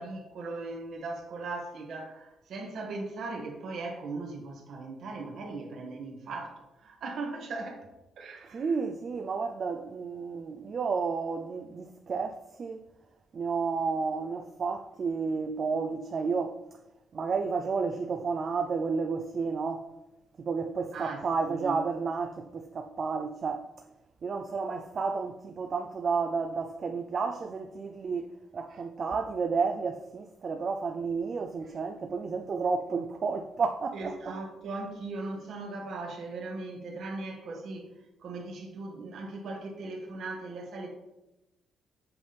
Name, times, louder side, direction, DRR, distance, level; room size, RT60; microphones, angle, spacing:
voice 1, 0.0-7.9 8.2-8.7 20.9-21.8 28.7-28.8 33.9-37.9 38.2-40.9, right 3 dB, 65° right, 1.7 m, -38 dB
voice 2, 8.5-12.8 13.3-16.6 17.1-19.9 20.4-23.7 24.2-28.3 28.5-34.4, right 5 dB, 45° right, 0.5 m, -31 dB
7.9 x 3.5 x 5.7 m
cardioid pair, 110°, 0 cm